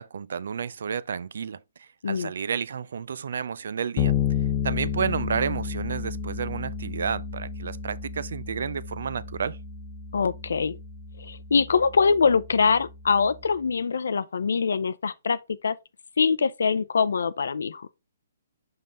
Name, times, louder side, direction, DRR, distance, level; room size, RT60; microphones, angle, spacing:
voice 1, 0.0-4.2 4.6-9.6, right 6 dB, 70° right, 0.4 m, -31 dB
Bass guitar, 4.0-13.6, left 7 dB, 25° left, 0.6 m, -32 dB
voice 2, 10.1-10.8 11.2-15.4 15.6-15.7 16.2-17.9, left 5 dB, 80° left, 0.5 m, -23 dB
5.5 x 5.3 x 3.5 m
hypercardioid pair, 145°, 0 cm